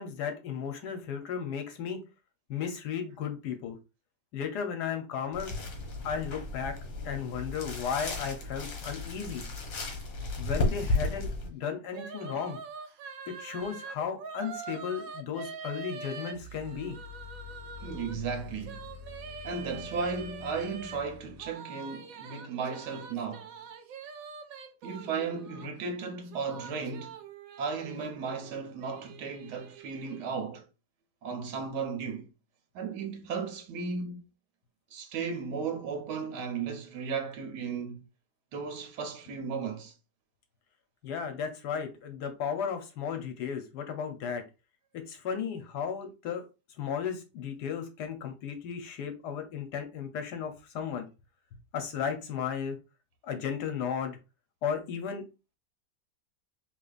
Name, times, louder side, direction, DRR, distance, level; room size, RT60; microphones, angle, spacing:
voice 1, 0.0-2.0 2.5-3.8 4.3-5.5 6.0-6.8 7.0-9.4 10.4-12.6 13.3-17.0 41.0-44.4 44.9-46.4 46.8-51.1 51.5-52.8 53.2-54.2 54.6-55.2, left 7 dB, 75° left, 1.3 m, -35 dB
sound 1, 5.3-11.5, left 2 dB, 60° left, 1.6 m, -34 dB
sound 2, 11.9-18.2 18.6-21.0 21.4-25.7 26.0-30.3, right 5 dB, 65° right, 0.9 m, -44 dB
sound 3, 16.3-21.5, left 4 dB, 25° right, 0.9 m, -47 dB
voice 2, 17.8-18.9 19.4-23.5 24.8-27.1 27.6-30.7 31.2-32.3 32.7-34.3 34.9-38.1 38.5-39.9, right 5 dB, 90° right, 1.3 m, -35 dB
4.0 x 3.1 x 2.4 m
omnidirectional pair, 1.8 m